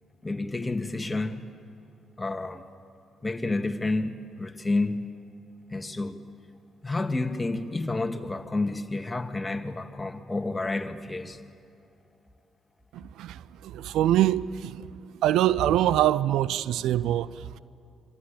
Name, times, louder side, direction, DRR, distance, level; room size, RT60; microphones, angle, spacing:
voice 1, 0.2-1.4 2.2-2.6 3.2-5.0 5.7-6.2 6.8-11.4, left 2 dB, 20° left, 2.2 m, -30 dB
voice 2, 12.9-14.9 15.2-17.6, right 12 dB, 70° right, 0.6 m, -24 dB
27.0 x 25.0 x 8.8 m
hypercardioid pair, 45°, 0 cm